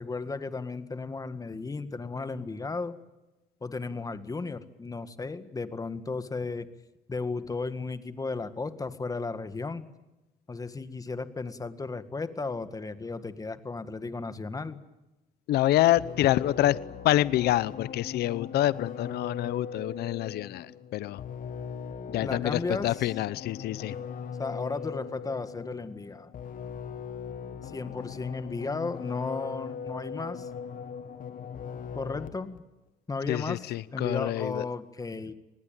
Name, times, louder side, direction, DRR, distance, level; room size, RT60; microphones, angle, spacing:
voice 1, 0.0-3.0 3.6-6.7 7.1-9.9 10.5-14.8 22.2-23.1 24.4-26.3 27.6-30.5 31.9-32.6 33.1-35.3, left 3 dB, 20° left, 11 dB, 1.8 m, -34 dB
voice 2, 15.5-16.8 17.0-20.7 20.9-21.2 22.1-23.9 33.3-34.6, left 14 dB, 75° left, 18 dB, 0.9 m, -26 dB
sound 1, 16.0-32.6, left 7 dB, 55° left, 2.0 m, -40 dB
24.5 x 19.5 x 9.1 m, 1.0 s
cardioid pair, 110°, 17 cm